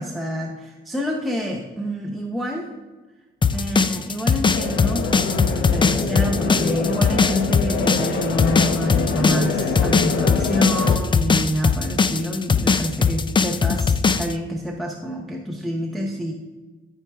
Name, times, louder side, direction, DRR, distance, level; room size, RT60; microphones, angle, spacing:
voice 1, 0.0-2.7 3.5-16.3, equal, ahead, -1 dB, 0.9 m, -27 dB
sound 1, 3.4-14.3, left 5 dB, 25° left, 0.4 m, -19 dB
sound 2, 4.5-11.0, left 5 dB, 80° left, 0.9 m, -25 dB
13.0 x 4.8 x 3.5 m, 1.2 s
cardioid pair, 90°, 20 cm